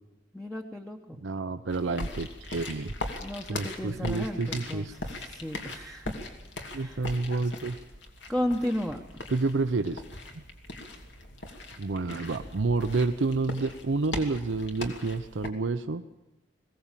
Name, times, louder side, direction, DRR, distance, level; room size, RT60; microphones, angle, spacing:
voice 1, 0.3-1.2 3.2-6.2 6.7-7.0 8.3-9.0, left 1 dB, ahead, 2 dB, 1.1 m, -34 dB
voice 2, 1.2-2.9 3.5-4.9 6.7-7.8 9.3-10.0 11.8-16.0, right 3 dB, 80° right, 9 dB, 0.7 m, -29 dB
sound 1, 1.7-15.5, left 2 dB, 70° left, 2.6 m, -40 dB
21.0 x 17.0 x 7.4 m, 1.0 s
head